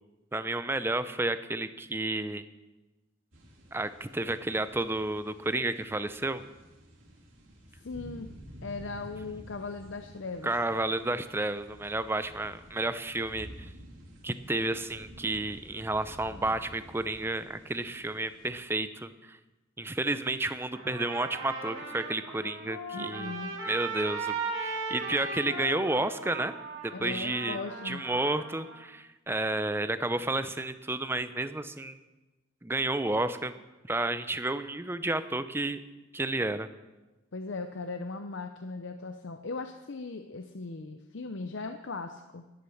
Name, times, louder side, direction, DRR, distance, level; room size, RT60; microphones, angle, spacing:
voice 1, 0.3-2.4 3.7-6.4 10.4-13.7 14.2-19.4 19.8-23.3 23.6-24.3 24.6-26.5 26.8-27.6 27.8-32.0 32.6-33.5 33.9-35.8 36.1-36.7, right 2 dB, 10° right, 12 dB, 0.5 m, -31 dB
sound 1, 3.3-18.6, equal, 75° right, 3.9 m, -51 dB
voice 2, 7.8-8.3 8.6-10.5 22.9-23.6 26.9-28.0 37.3-42.4, left 3 dB, 65° left, 7 dB, 0.7 m, -38 dB
Trumpet, 20.7-28.8, right 3 dB, 90° right, 3.7 m, -37 dB
13.0 x 10.0 x 6.5 m, 1.1 s
head